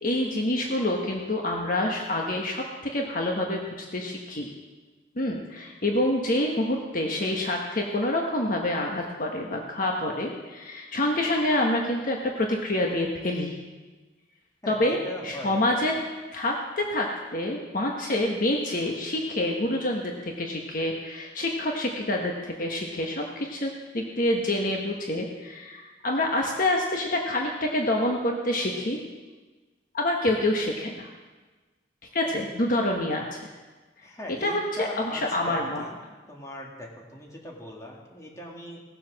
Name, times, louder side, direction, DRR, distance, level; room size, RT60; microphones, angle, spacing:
voice 1, 0.0-2.6 2.9-4.5 5.2-13.5 14.7-15.0 15.2-15.9 16.3-29.0 29.9-31.1 32.1-33.5 34.4-35.8, left 1 dB, 50° left, 0 dB, 1.3 m, -27 dB
voice 2, 14.6-15.9 34.0-36.0 36.3-38.8, equal, 20° left, -2 dB, 2.3 m, -40 dB
18.0 x 7.6 x 6.4 m, 1.3 s
head